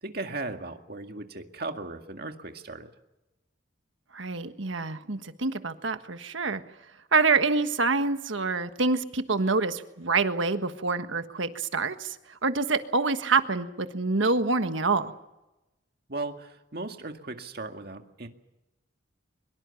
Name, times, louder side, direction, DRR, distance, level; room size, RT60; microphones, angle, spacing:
voice 1, 0.0-2.9 16.1-18.3, right 2 dB, 50° right, 5 dB, 2.1 m, -37 dB
voice 2, 4.1-6.6 7.1-12.1 12.4-15.1, right 4 dB, 80° right, 9 dB, 1.5 m, -26 dB
24.0 x 22.0 x 7.1 m, 0.97 s
head